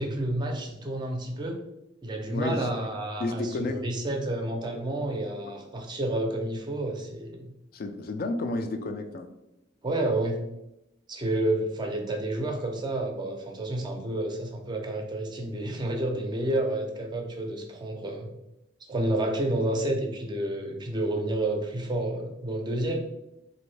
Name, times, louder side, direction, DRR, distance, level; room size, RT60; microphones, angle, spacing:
voice 1, 0.0-1.6 2.0-7.5 9.8-10.4 11.1-18.3 18.9-23.0, right 1 dB, 25° right, 3 dB, 0.4 m, -30 dB
voice 2, 2.3-2.7 3.2-3.8 7.7-9.3, left 2 dB, 50° left, 6 dB, 0.3 m, -31 dB
2.9 x 2.6 x 3.1 m, 0.89 s
head